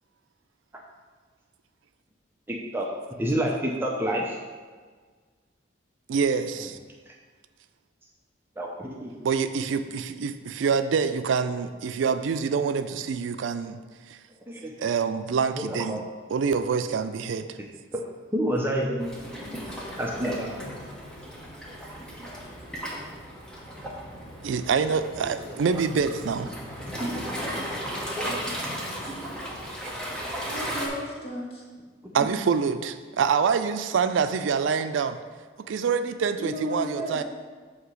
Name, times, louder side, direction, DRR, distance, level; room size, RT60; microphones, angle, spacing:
voice 1, 2.5-2.9 3.2-4.4 7.1-7.2 8.6-9.1 14.5-14.7 15.6-16.0 17.9-18.0 18.3-19.2 20.0-20.6 25.5-25.6 32.2-32.3, equal, 10° right, -1 dB, 0.5 m, -28 dB
voice 2, 6.1-6.8 9.2-13.8 14.1-14.2 14.8-16.0 16.3-17.6 24.4-26.5 28.6-28.7 32.1-35.2 35.7-37.2, right 6 dB, 80° right, 10 dB, 0.4 m, -26 dB
Waves surf, 19.0-30.9, equal, 5° left, 1.0 m, -35 dB
voice 3, 30.5-31.6 36.4-37.2, equal, 30° left, -3 dB, 1.4 m, -34 dB
8.0 x 2.9 x 6.1 m, 1.5 s
head